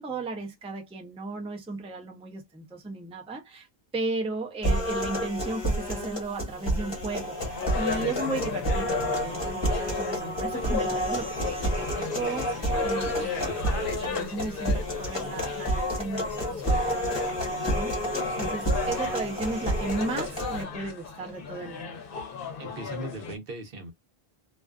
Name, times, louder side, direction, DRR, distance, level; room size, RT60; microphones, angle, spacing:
voice 1, 0.0-3.7 3.9-22.0, right 3 dB, 10° right, 0.4 m, -35 dB
sound 1, 4.6-20.6, equal, 25° left, 1.2 m, -29 dB
sound 2, 7.3-23.4, left 6 dB, 65° left, 0.9 m, -36 dB
voice 2, 22.6-23.9, right 2 dB, 65° right, 0.9 m, -39 dB
2.4 x 2.3 x 2.3 m
omnidirectional pair, 1.0 m